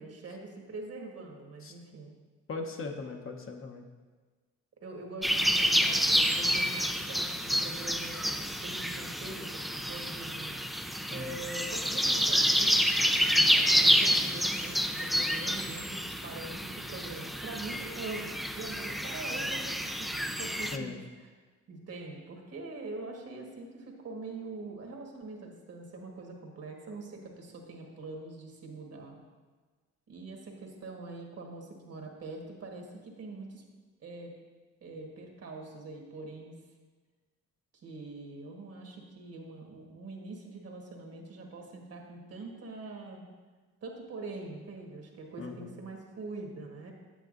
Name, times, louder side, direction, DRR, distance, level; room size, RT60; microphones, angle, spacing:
voice 1, 0.0-2.1 4.8-10.6 11.1-12.9 13.5-20.1 20.4-20.9 21.2-21.3 21.7-29.2 30.1-33.6 34.0-34.3 34.8-36.6 37.8-43.3 43.8-46.9, right 3 dB, 55° right, 1 dB, 1.6 m, -43 dB
voice 2, 2.5-3.8 11.1-11.4 20.7-21.0 45.4-45.7, left 4 dB, 45° left, 3 dB, 0.9 m, -39 dB
sound 1, 5.2-20.8, equal, ahead, 0.4 m, -28 dB
9.0 x 7.7 x 2.6 m, 1.4 s
cardioid pair, 90°, 30 cm